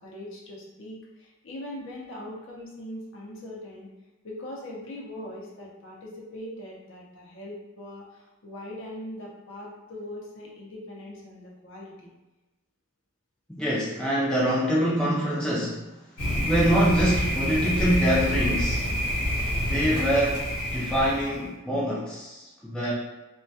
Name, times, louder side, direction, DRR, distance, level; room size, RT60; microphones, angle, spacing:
voice 1, 0.0-3.9 4.2-12.1, left 1 dB, 55° left, -3 dB, 0.6 m, -41 dB
voice 2, 13.6-15.9 16.4-18.9 19.7-20.4 20.7-22.9, equal, 5° left, -8 dB, 0.3 m, -25 dB
Thunder, 16.2-21.5, equal, 85° left, 0.8 m, -27 dB
2.2 x 2.2 x 2.6 m, 1.1 s
head